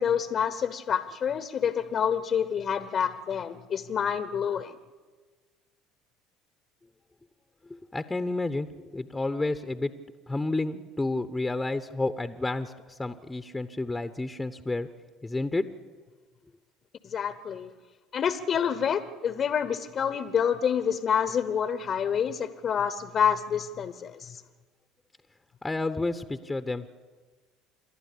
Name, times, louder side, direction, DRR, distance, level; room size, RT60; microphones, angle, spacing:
voice 1, 0.0-4.8 17.0-17.7 18.1-24.4, left 7 dB, 45° left, 12 dB, 1.0 m, -28 dB
voice 2, 7.7-8.7 8.9-9.9 10.3-14.9 15.2-15.6 25.6-26.9, left 2 dB, 15° left, 10 dB, 0.9 m, -30 dB
28.0 x 11.5 x 8.6 m, 1.4 s
hypercardioid pair, 70°, 0 cm